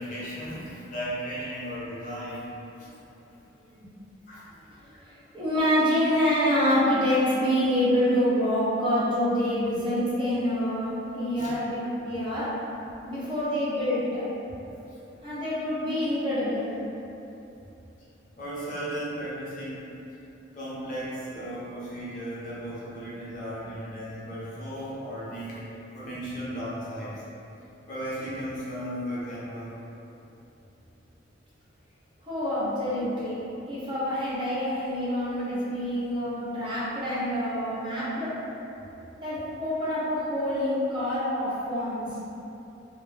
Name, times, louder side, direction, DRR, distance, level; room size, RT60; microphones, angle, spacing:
voice 1, 0.0-2.5 2.8-2.9 4.3-4.5 11.3-11.6 14.9-15.2 18.4-19.9 20.5-27.2 27.9-29.8 36.2-36.3, equal, 40° left, -9 dB, 0.6 m, -36 dB
voice 2, 4.6-12.5 13.1-14.2 15.2-16.7 32.2-33.4 33.7-38.3 39.2-42.2, equal, 25° right, -11 dB, 0.6 m, -26 dB
2.2 x 2.1 x 3.2 m, 2.9 s
head